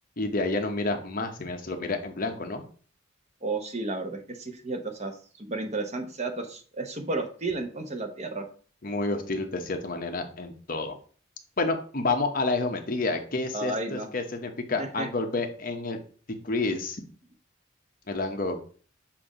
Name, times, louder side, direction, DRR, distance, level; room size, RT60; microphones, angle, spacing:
voice 1, 0.2-2.6 8.8-11.0 11.6-16.0 16.4-17.0 18.1-18.6, left 3 dB, 45° left, 5 dB, 0.9 m, -29 dB
voice 2, 3.4-5.1 5.4-8.4 13.5-14.1 14.8-15.1, right 2 dB, 35° right, 5 dB, 0.9 m, -32 dB
7.3 x 2.7 x 4.9 m, 0.41 s
head